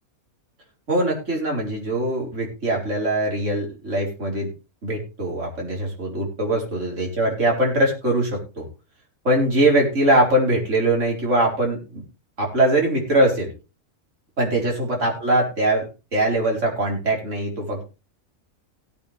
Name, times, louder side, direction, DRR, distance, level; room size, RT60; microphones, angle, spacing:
voice 1, 0.9-4.5 4.8-8.7 9.2-12.0 12.4-13.5 14.4-15.9 16.1-17.9, right 1 dB, 55° right, -2 dB, 5.0 m, -22 dB
17.5 x 8.7 x 3.5 m, 0.30 s
omnidirectional pair, 1.5 m